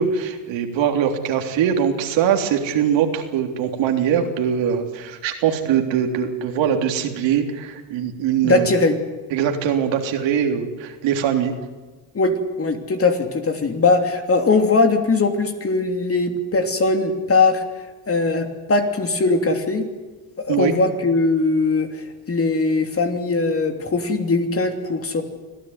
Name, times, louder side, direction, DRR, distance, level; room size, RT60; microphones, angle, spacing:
voice 1, 0.0-8.7 9.3-11.5 20.5-20.7, right 8 dB, 70° right, 4 dB, 3.5 m, -22 dB
voice 2, 8.4-9.0 12.1-17.6 18.1-19.8 20.4-25.2, left 3 dB, 30° left, 5 dB, 3.1 m, -20 dB
25.5 x 15.5 x 9.6 m, 1.3 s
cardioid pair, 100°, 46 cm